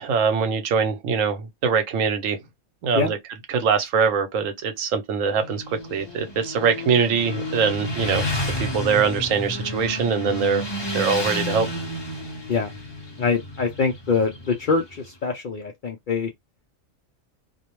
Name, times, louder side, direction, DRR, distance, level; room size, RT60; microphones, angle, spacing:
voice 1, 0.0-2.4 2.8-3.2 3.5-8.3 8.6-10.6 10.9-11.7, right 6 dB, 80° right, 1.1 m, -23 dB
Motorcycle, 5.3-15.1, left 1 dB, 25° left, 0.7 m, -31 dB
voice 2, 13.2-16.3, left 5 dB, 60° left, 0.5 m, -24 dB
2.4 x 2.1 x 3.0 m
omnidirectional pair, 1.4 m